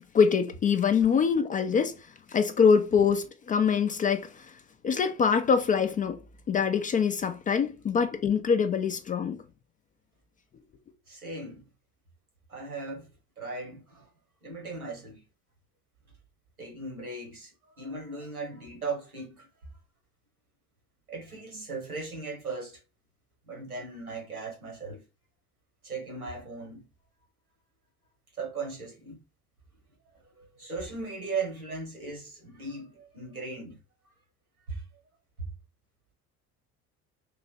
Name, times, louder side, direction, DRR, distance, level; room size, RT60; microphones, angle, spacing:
voice 1, 0.1-1.9 2.3-4.3 4.8-6.2 6.5-9.4, left 6 dB, 20° left, 0.4 m, -24 dB
voice 2, 11.1-11.6 12.5-13.1 13.4-14.1 14.4-15.2 16.6-19.5 21.1-22.8 23.5-25.0 25.8-26.9 28.3-29.2 30.3-33.8 34.7-34.8 35.4-35.5, right 3 dB, 90° right, 1.2 m, -38 dB
3.1 x 2.8 x 4.0 m
figure-of-eight pair, 55°, 43 cm